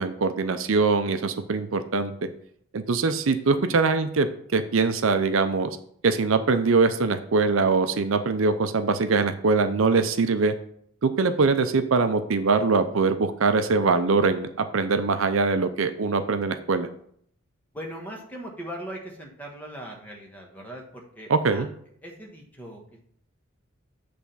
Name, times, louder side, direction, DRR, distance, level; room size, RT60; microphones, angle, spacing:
voice 1, 0.0-2.1 2.7-5.8 6.0-10.5 11.0-16.9 21.3-21.7, right 4 dB, 70° right, 9 dB, 0.5 m, -23 dB
voice 2, 17.7-21.7 22.0-22.8, right 1 dB, 10° left, 0 dB, 1.3 m, -39 dB
8.4 x 3.4 x 5.5 m, 0.64 s
head